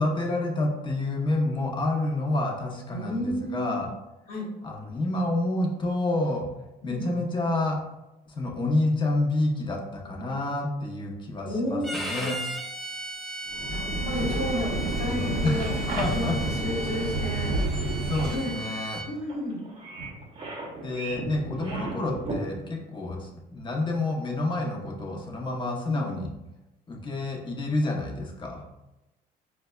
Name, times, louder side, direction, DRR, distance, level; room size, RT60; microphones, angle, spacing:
voice 1, 0.0-3.9 4.6-6.5 6.8-7.8 8.3-12.4 15.4-16.4 17.8-19.0 20.8-26.3 26.9-28.6, left 2 dB, 30° left, 0 dB, 0.7 m, -28 dB
voice 2, 2.9-3.8 4.3-4.5 6.8-7.3 11.4-11.9 13.7-17.5 18.3-18.6 19.1-19.6 21.8-21.9 25.9-26.1, left 1 dB, 65° left, -5 dB, 1.0 m, -32 dB
Bowed string instrument, 11.8-19.1, right 1 dB, ahead, 0.3 m, -36 dB
sound 1, 13.5-18.6, right 2 dB, 55° right, 0.5 m, -29 dB
sound 2, 16.9-22.4, right 2 dB, 30° right, 0.8 m, -38 dB
4.5 x 2.1 x 2.2 m, 0.95 s
cardioid pair, 110°, 17 cm